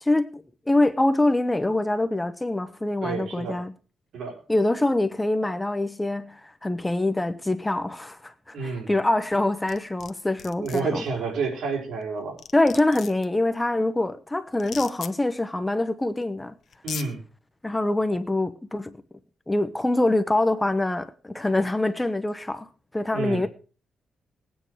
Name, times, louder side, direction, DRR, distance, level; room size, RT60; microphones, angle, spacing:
voice 1, 0.0-3.7 4.5-11.0 12.5-16.5 17.6-19.0 19.5-22.7 22.9-23.5, left 2 dB, 10° left, 0.8 m, -24 dB
voice 2, 3.0-3.6 4.1-4.4 8.5-8.9 10.6-12.4 16.8-17.2 23.1-23.5, right 4 dB, 75° right, 4.7 m, -29 dB
sound 1, 9.7-10.1 10.4-10.8 12.0-12.1 12.4-13.2 14.6-15.1 16.2-16.3 16.7-17.1, left 7 dB, 60° left, 1.0 m, -37 dB
19.0 x 9.2 x 4.7 m
cardioid pair, 135°, 0 cm